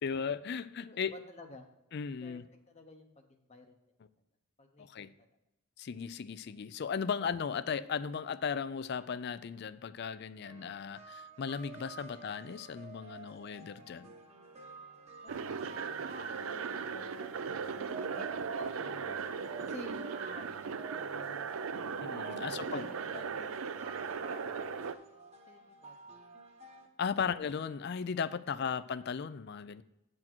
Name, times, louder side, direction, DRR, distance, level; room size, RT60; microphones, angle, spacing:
voice 1, 0.0-1.1 1.9-2.4 4.8-5.1 5.8-14.1 22.0-22.9 27.0-29.8, left 6 dB, 50° left, 0.4 m, -36 dB
voice 2, 0.9-1.7 2.2-2.4 2.7-3.8 4.6-5.1 12.1-12.2 15.2-19.2 19.6-21.5 22.3-23.5 23.8-24.9 25.5-26.2, left 2 dB, 30° left, 0.8 m, -52 dB
sound 1, 10.4-26.9, right 3 dB, 30° right, 1.0 m, -51 dB
sound 2, 15.3-24.9, right 5 dB, 70° right, 0.5 m, -38 dB
9.0 x 6.2 x 4.4 m
head